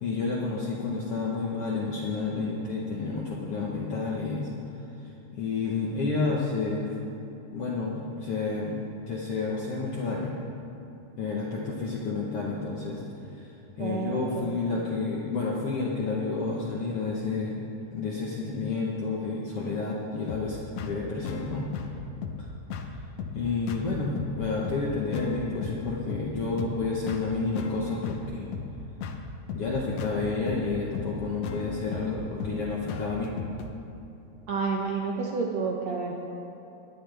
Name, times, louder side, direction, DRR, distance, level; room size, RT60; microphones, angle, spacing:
voice 1, 0.0-4.5 5.0-6.9 7.5-10.4 11.2-13.0 13.3-13.5 13.8-17.6 17.9-21.7 23.3-28.5 29.5-33.4, left 4 dB, 65° left, -4 dB, 1.4 m, -30 dB
voice 2, 13.8-14.5 34.5-36.2, right 4 dB, 70° right, -1 dB, 1.6 m, -30 dB
sound 1, 20.3-33.7, left 5 dB, 85° left, 1.4 m, -37 dB
19.5 x 11.5 x 3.4 m, 2.9 s
omnidirectional pair, 4.0 m